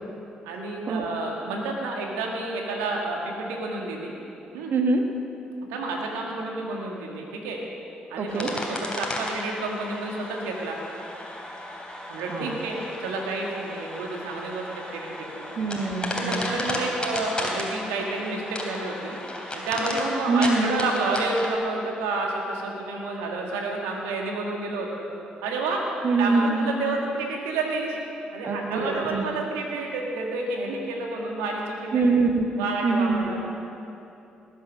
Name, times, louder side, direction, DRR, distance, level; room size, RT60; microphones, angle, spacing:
voice 1, 0.4-4.1 4.5-4.7 5.7-7.6 8.1-10.8 12.1-15.5 16.1-19.2 19.5-25.1 25.4-25.8 26.2-28.0 28.3-32.1 32.6-33.5, right 3 dB, 80° right, 0 dB, 1.9 m, -30 dB
voice 2, 4.7-5.0 8.2-8.5 12.3-12.6 15.6-16.6 20.3-20.7 26.0-26.7 28.4-29.3 31.9-33.3, right 3 dB, 55° right, 4 dB, 1.4 m, -24 dB
sound 1, 8.3-21.5, left 1 dB, 20° left, 3.2 m, -34 dB
19.0 x 8.1 x 6.5 m, 2.9 s
hypercardioid pair, 40°, 4 cm